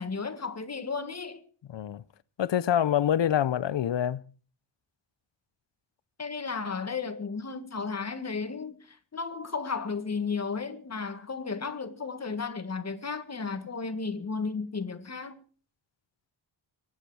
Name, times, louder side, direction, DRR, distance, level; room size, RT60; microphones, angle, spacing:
voice 1, 0.0-1.4 6.2-15.4, left 4 dB, 35° left, 1.8 m, -34 dB
voice 2, 1.7-2.0 2.4-4.2, left 10 dB, 65° left, 0.8 m, -26 dB
24.5 x 9.8 x 4.9 m
wide cardioid pair, 135°, 48 cm